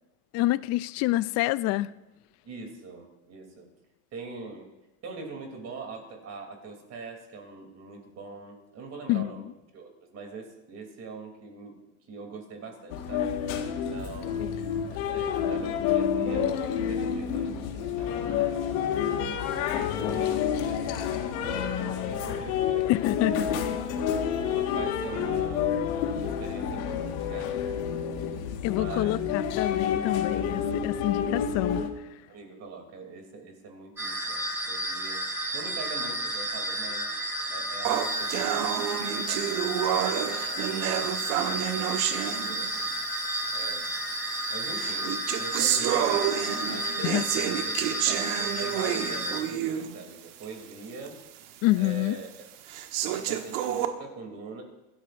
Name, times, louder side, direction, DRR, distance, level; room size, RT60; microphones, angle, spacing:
voice 1, 0.3-1.9 9.1-9.3 14.4-14.5 22.9-23.7 28.6-31.8 47.0-47.2 51.6-52.2, left 17 dB, 40° left, 0.4 m, -27 dB
voice 2, 2.4-3.7 4.1-4.7 5.0-9.5 9.7-11.8 12.1-13.3 13.7-14.5 14.9-20.9 21.4-23.6 24.5-25.8 26.2-27.6 27.9-28.1 28.7-29.2 32.3-35.3 35.5-37.1 37.5-40.8 41.2-42.9 43.5-43.9 44.5-51.2 51.7-52.3 53.1-54.6, right 4 dB, 35° right, 3.1 m, -43 dB
sound 1, 12.9-31.9, left 8 dB, 70° left, 1.8 m, -29 dB
sound 2, 34.0-49.4, right 1 dB, 5° right, 5.8 m, -32 dB
sound 3, 37.8-43.0 43.8-43.9 44.7-50.0 50.4-50.5 51.1-51.2 51.8-51.9 52.7-53.9, right 10 dB, 75° right, 1.5 m, -29 dB
25.5 x 13.0 x 2.6 m
supercardioid pair, 135°, 44 cm